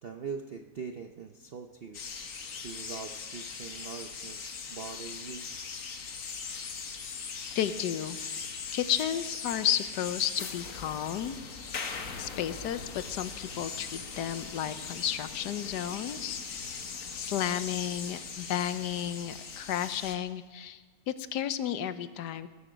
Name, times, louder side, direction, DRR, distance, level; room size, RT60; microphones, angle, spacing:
voice 1, 0.0-2.0 2.6-5.5, right 5 dB, 60° right, 5 dB, 0.6 m, -42 dB
sound 1, 1.9-20.2, left 5 dB, 55° left, 1.4 m, -40 dB
voice 2, 7.5-8.2 8.7-11.4 12.2-16.4 16.7-16.9 17.1-20.8 21.1-22.5, left 10 dB, 75° left, 13 dB, 1.3 m, -32 dB
19.5 x 11.5 x 5.1 m, 1.5 s
omnidirectional pair, 1.9 m